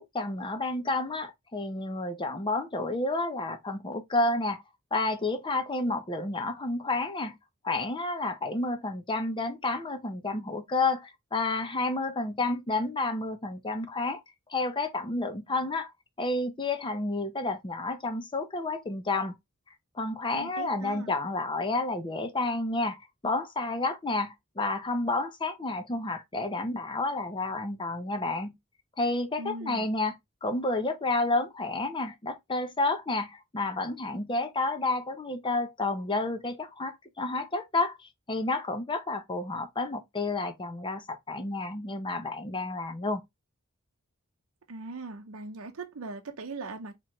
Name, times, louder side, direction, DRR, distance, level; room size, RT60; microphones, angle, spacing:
voice 1, 0.0-4.6 4.9-7.4 7.6-14.2 14.5-15.9 16.2-19.3 19.9-28.5 29.0-30.2 30.4-43.2, left 2 dB, 25° left, 0.7 m, -30 dB
voice 2, 20.3-21.1 29.4-29.9 44.7-47.0, right 3 dB, 75° right, 0.7 m, -40 dB
4.8 x 3.0 x 2.9 m
head